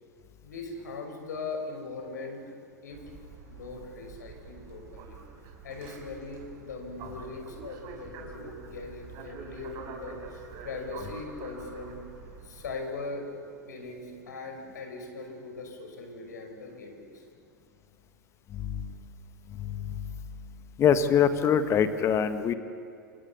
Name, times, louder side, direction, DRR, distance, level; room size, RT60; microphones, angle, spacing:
voice 1, 0.4-2.5 2.8-3.0 3.5-5.2 5.6-12.0 12.4-13.3 13.6-17.2, left 3 dB, 65° left, 4 dB, 5.7 m, -40 dB
sound 1, 2.9-12.7, right 4 dB, 40° right, 4.9 m, -46 dB
voice 2, 20.8-22.5, left 7 dB, 25° left, 10 dB, 1.8 m, -23 dB
28.5 x 27.0 x 7.0 m, 2.6 s
figure-of-eight pair, 90°, 10 cm